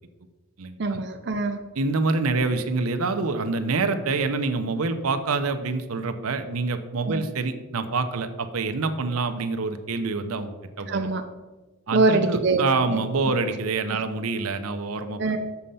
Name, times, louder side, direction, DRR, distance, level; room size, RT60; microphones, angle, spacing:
voice 1, 0.8-1.6 7.0-7.2 10.9-11.2 11.9-13.0 13.9-14.0 15.2-15.4, right 3 dB, 50° right, 5 dB, 0.5 m, -24 dB
voice 2, 1.8-11.0 11.9-15.2, right 3 dB, 85° right, 8 dB, 0.7 m, -26 dB
7.0 x 6.4 x 5.5 m, 1.2 s
head